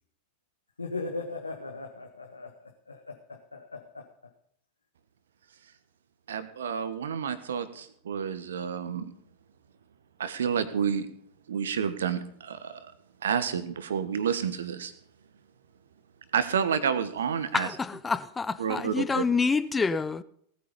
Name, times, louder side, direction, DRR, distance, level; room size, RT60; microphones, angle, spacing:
voice 1, 0.8-2.5 2.9-4.0, left 3 dB, 80° left, 1.5 m, -38 dB
voice 2, 6.3-9.0 10.2-11.1 11.5-12.8 13.2-14.9 16.3-17.7 18.6-19.2, right 7 dB, 65° right, 1.5 m, -29 dB
voice 3, 17.5-20.2, left 4 dB, 15° left, 0.7 m, -27 dB
18.5 x 9.4 x 5.4 m
figure-of-eight pair, 90°, 0 cm